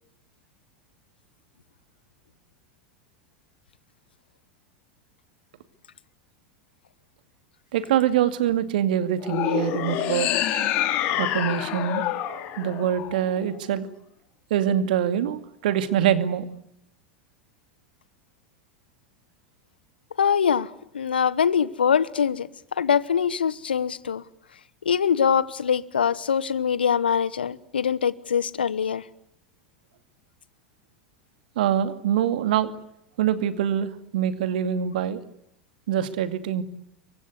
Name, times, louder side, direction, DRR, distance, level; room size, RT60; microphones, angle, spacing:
voice 1, 7.7-10.3 11.2-12.1 12.6-13.9 14.5-16.5 31.6-32.7 33.2-35.2 35.9-36.6, right 10 dB, 60° right, 10 dB, 2.4 m, -24 dB
sound 1, 9.2-13.6, left 12 dB, 45° left, 4.1 m, -27 dB
voice 2, 20.2-24.2 24.8-29.0, left 7 dB, 75° left, 19 dB, 1.2 m, -23 dB
29.0 x 24.5 x 8.2 m, 0.78 s
figure-of-eight pair, 80°, 5 cm